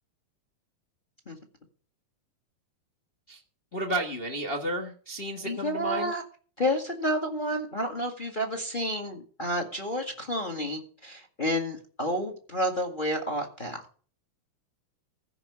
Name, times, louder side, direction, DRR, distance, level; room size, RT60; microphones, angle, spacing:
voice 1, 3.7-6.1, right 1 dB, 65° left, 4 dB, 0.5 m, -32 dB
voice 2, 5.4-6.2 6.6-13.8, equal, 25° left, 4 dB, 1.1 m, -30 dB
15.5 x 5.9 x 7.1 m, 0.41 s
omnidirectional pair, 4.0 m